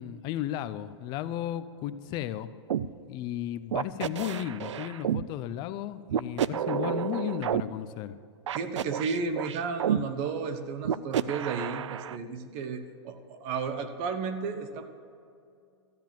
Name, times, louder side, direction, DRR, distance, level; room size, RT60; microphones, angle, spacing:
voice 1, 0.0-2.5 3.1-8.2, left 12 dB, 30° left, 13 dB, 0.5 m, -34 dB
sound 1, 2.7-2.9 3.7-5.2 6.1-7.6 8.5-10.0 10.8-12.2, right 9 dB, 85° right, 0.5 m, -30 dB
voice 2, 8.5-14.8, right 5 dB, 35° right, 8 dB, 1.1 m, -33 dB
13.5 x 9.1 x 7.5 m, 2.4 s
hypercardioid pair, 145°, 15 cm